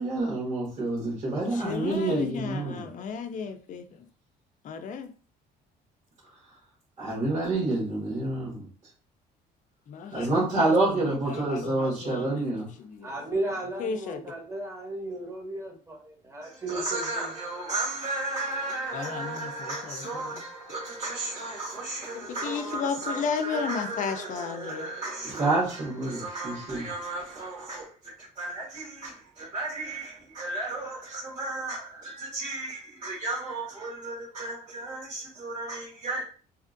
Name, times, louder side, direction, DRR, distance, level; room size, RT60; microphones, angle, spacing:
voice 1, 0.0-2.9 7.0-8.7 10.1-12.7 16.4-27.9 28.4-36.2, right 2 dB, 45° right, 1.5 m, -31 dB
voice 2, 1.5-4.1 4.6-5.1 9.9-12.5 12.8-13.1 13.8-14.2 18.9-20.4 22.1-24.9, left 6 dB, 50° left, 0.4 m, -34 dB
voice 3, 13.0-17.3, right 2 dB, 15° right, 1.0 m, -35 dB
2.8 x 2.5 x 2.5 m
cardioid pair, 110°, 17 cm